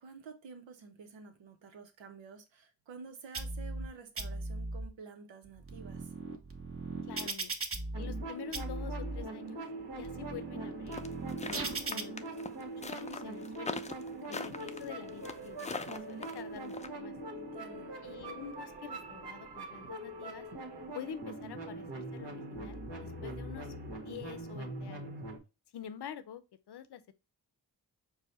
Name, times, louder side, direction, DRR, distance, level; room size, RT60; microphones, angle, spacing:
voice 1, 0.0-6.1 14.1-14.5 17.3-17.9, right 5 dB, 85° right, 0.8 m, -50 dB
sound 1, 3.3-3.9 4.2-4.9 5.5-8.3 8.5-9.2 9.8-12.0, right 3 dB, 30° right, 0.8 m, -38 dB
voice 2, 7.1-7.6 8.0-9.6 10.0-11.0 11.4-12.3 12.9-13.8 14.3-17.1 18.0-20.5 20.9-23.7 24.0-25.1 25.7-26.4 26.7-27.1, left 9 dB, 65° left, 0.6 m, -47 dB
sound 2, 7.9-25.4, right 2 dB, 65° right, 1.2 m, -42 dB
sound 3, 10.9-16.9, left 4 dB, 15° left, 0.4 m, -41 dB
4.7 x 2.1 x 4.1 m
cardioid pair, 45°, 43 cm